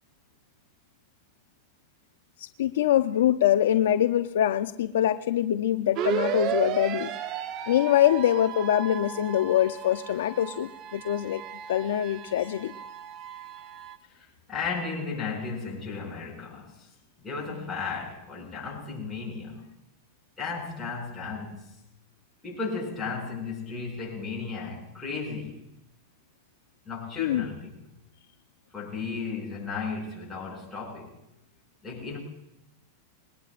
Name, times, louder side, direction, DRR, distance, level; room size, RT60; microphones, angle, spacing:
voice 1, 2.4-7.1 7.7-11.4 11.7-12.7 27.2-27.4, left 11 dB, 80° left, 9 dB, 0.6 m, -24 dB
sound 1, 6.0-14.0, right 9 dB, 40° right, 1.0 m, -34 dB
voice 2, 14.1-16.9 17.2-19.7 20.4-21.8 22.4-25.6 26.8-27.7 28.7-31.1 31.8-32.2, left 4 dB, 10° left, -4 dB, 6.7 m, -35 dB
22.0 x 18.0 x 2.5 m, 0.86 s
supercardioid pair, 130°, 0 cm